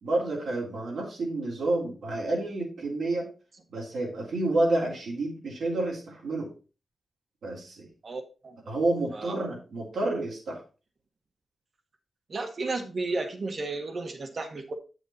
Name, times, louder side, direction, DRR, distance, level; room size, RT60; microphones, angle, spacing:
voice 1, 0.0-3.3 3.7-6.5 7.4-7.9 8.7-10.6, right 2 dB, 80° right, -3 dB, 3.2 m, -29 dB
voice 2, 8.0-8.6 9.1-9.3 12.3-14.7, right 3 dB, 55° right, 6 dB, 1.7 m, -33 dB
7.4 x 6.4 x 4.1 m, 0.33 s
cardioid pair, 55°, 0 cm